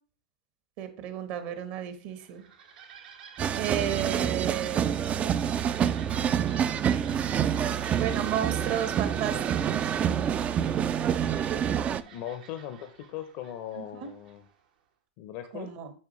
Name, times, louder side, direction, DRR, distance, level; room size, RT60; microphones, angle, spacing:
voice 1, 0.8-2.4 3.5-4.8 6.9-7.0 7.9-9.4 9.6-9.9 13.8-14.1 15.5-15.9, right 10 dB, 55° right, 9 dB, 1.2 m, -32 dB
sound 1, 2.1-14.6, right 7 dB, 75° right, 1.3 m, -49 dB
sound 2, 3.4-12.0, right 8 dB, 30° right, 0.3 m, -27 dB
voice 2, 12.0-14.4 15.2-15.7, left 11 dB, 55° left, 9 dB, 0.7 m, -39 dB
7.2 x 5.4 x 3.1 m, 0.40 s
hypercardioid pair, 110°, 5 cm